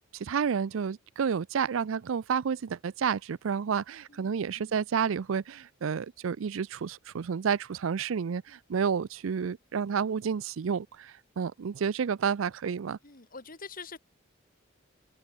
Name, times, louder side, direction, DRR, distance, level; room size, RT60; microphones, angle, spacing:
voice 1, 0.1-13.0, right 6 dB, 85° right, 0.4 m, -30 dB
voice 2, 4.1-4.8 13.0-14.0, left 5 dB, 45° left, 2.5 m, -46 dB
head